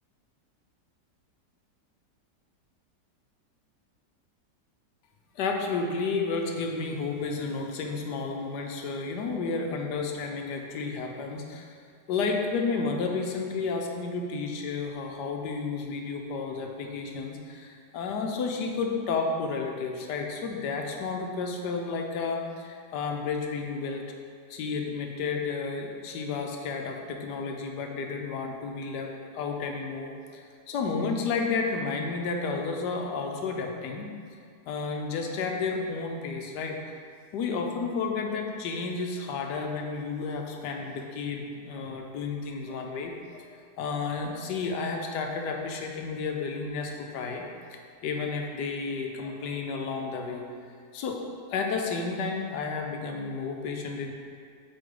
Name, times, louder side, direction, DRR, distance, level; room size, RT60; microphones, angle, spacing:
voice 1, 5.4-11.7 12.1-24.0 24.5-29.1 29.3-34.1 34.7-36.8 37.3-43.5 43.8-50.4 50.9-51.2 51.5-54.1, left 4 dB, 75° left, 2 dB, 1.3 m, -32 dB
8.1 x 4.7 x 3.8 m, 2.2 s
omnidirectional pair, 1.9 m